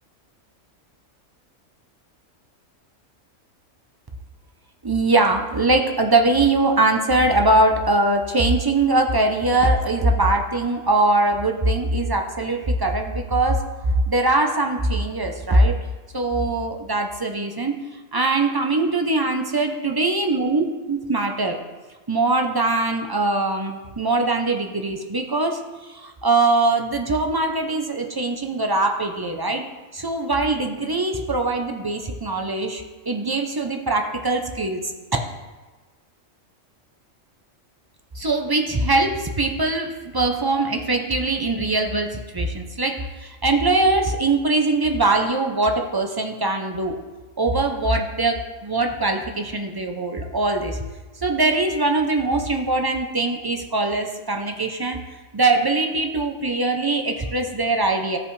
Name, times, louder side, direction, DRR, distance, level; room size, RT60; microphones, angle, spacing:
voice 1, 4.8-15.8 16.1-17.8 18.1-21.6 22.1-29.6 29.9-34.9 38.2-47.0 47.4-50.8 51.2-55.0 55.3-58.2, right 2 dB, 40° right, 3 dB, 0.3 m, -22 dB
14.0 x 5.3 x 3.2 m, 1.3 s
omnidirectional pair, 1.3 m